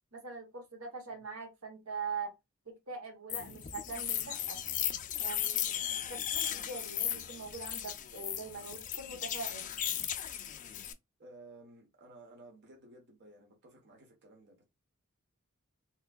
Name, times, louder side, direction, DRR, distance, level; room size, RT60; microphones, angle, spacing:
voice 1, 0.1-2.3 2.7-4.6 5.2-9.7, right 4 dB, 75° right, 1.1 m, -43 dB
sound 1, 3.3-10.9, left 11 dB, 35° left, 0.4 m, -36 dB
voice 2, 11.2-14.6, right 2 dB, 50° right, 1.0 m, -55 dB
3.5 x 3.0 x 2.3 m
head